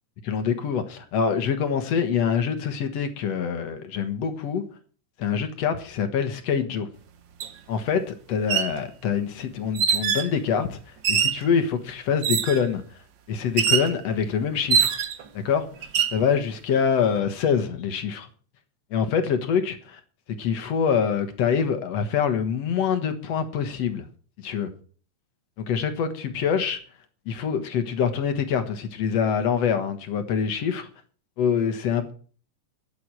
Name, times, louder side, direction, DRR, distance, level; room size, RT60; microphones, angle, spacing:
voice 1, 0.2-4.6 5.2-6.9 7.7-12.8 13.3-15.0 15.4-15.7 16.1-18.3 18.9-20.0 20.4-24.1 24.4-24.7 25.6-26.8 27.3-30.9 31.4-32.1, left 7 dB, 60° left, 2.2 m, -25 dB
sound 1, 7.4-7.5 8.3-8.7 9.7-10.3 11.0-11.4 12.2-12.7 13.6-13.9 14.7-15.3 15.8-16.2, right 7 dB, 70° right, 1.0 m, -23 dB
12.0 x 7.9 x 7.6 m
omnidirectional pair, 3.6 m